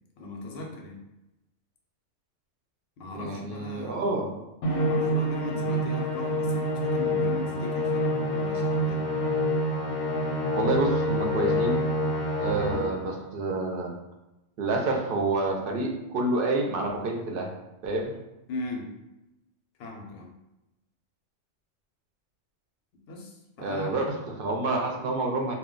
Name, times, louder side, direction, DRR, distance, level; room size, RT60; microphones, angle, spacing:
voice 1, 0.2-1.0 3.0-4.2 4.8-9.1 12.7-12.9 18.5-18.9 19.8-20.3 23.1-24.0, left 2 dB, 65° left, 1 dB, 0.7 m, -38 dB
voice 2, 3.1-4.3 10.5-11.8 12.4-13.9 14.6-17.5 17.8-18.1 23.6-25.5, right 2 dB, 60° right, 1 dB, 0.6 m, -28 dB
Musical instrument, 4.6-13.1, equal, 85° left, 1.0 m, -27 dB
2.2 x 2.1 x 3.7 m, 0.95 s
omnidirectional pair, 1.3 m